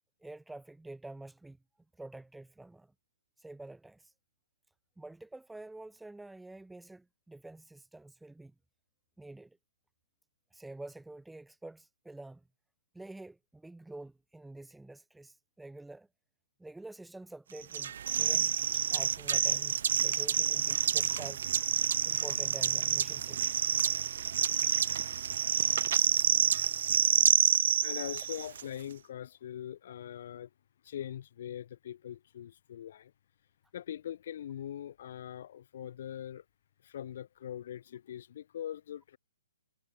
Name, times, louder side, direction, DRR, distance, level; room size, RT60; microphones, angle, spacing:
voice 1, 0.2-1.6 2.0-2.9 3.4-4.1 5.0-8.5 9.2-9.6 10.5-12.4 12.9-16.1 16.6-21.4 22.0-23.6 27.7-27.9, right 2 dB, ahead, 2.3 m, -48 dB
sound 1, 17.7-28.6, right 8 dB, 45° right, 0.4 m, -28 dB
voice 2, 27.4-30.5 30.8-33.1 33.7-36.4 36.8-39.2, left 10 dB, 40° left, 2.8 m, -42 dB
hypercardioid pair, 175°, 0 cm